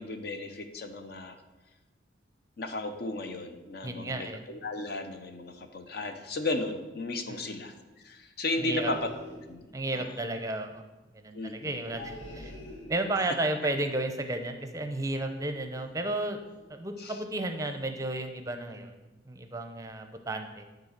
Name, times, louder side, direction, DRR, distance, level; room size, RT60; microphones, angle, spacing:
voice 1, 0.0-1.4 2.6-7.7 8.0-9.1 9.5-9.7 9.9-10.1 11.3-11.8 17.0-17.2, left 2 dB, 55° left, 7 dB, 0.8 m, -34 dB
voice 2, 3.8-4.4 7.3-7.5 8.6-8.9 9.7-10.8 11.1-12.5 12.9-16.4 16.7-20.7, right 2 dB, 20° right, 7 dB, 0.6 m, -33 dB
sound 1, 8.9-9.7 11.8-13.3 15.0-15.4 15.7-16.1 16.4-16.6, left 1 dB, 75° left, 1.7 m, -46 dB
9.8 x 4.0 x 6.6 m, 1.1 s
head